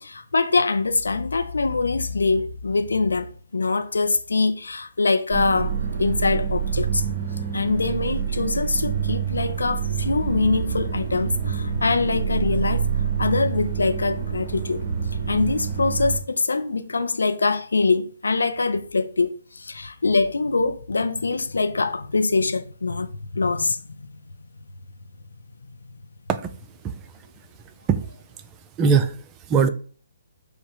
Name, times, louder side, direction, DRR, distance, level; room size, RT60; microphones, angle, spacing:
voice 1, 0.0-3.3 3.5-5.7 6.0-7.0 7.5-14.8 15.3-23.8, left 3 dB, 80° left, 0.4 m, -23 dB
sound 1, 5.3-16.2, right 7 dB, 40° right, 1.0 m, -27 dB
voice 2, 28.8-29.7, right 6 dB, 20° right, 0.4 m, -21 dB
4.9 x 2.1 x 4.7 m
figure-of-eight pair, 135°, 0 cm